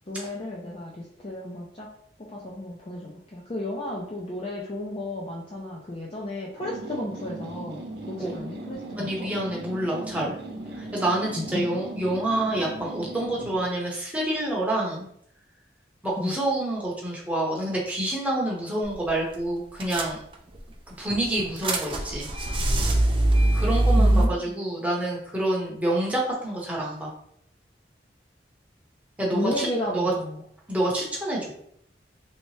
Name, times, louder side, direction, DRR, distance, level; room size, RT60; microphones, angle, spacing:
voice 1, 0.1-1.9 2.2-7.8 8.1-9.1 11.5-11.6 16.2-16.3 24.0-24.6 29.3-30.4, left 1 dB, 30° left, -4 dB, 0.5 m, -33 dB
sound 1, 6.6-13.7, right 2 dB, 65° right, 0.7 m, -38 dB
voice 2, 9.0-10.4 10.7-15.1 16.0-20.2 21.0-22.3 23.5-27.1 29.2-30.1 30.7-31.5, right 1 dB, 10° right, -3 dB, 0.8 m, -27 dB
sound 2, 18.8-19.1 19.3-19.4 19.8-20.6 21.1-24.3, right 1 dB, 30° right, 0.4 m, -22 dB
3.2 x 2.8 x 3.1 m, 0.69 s
head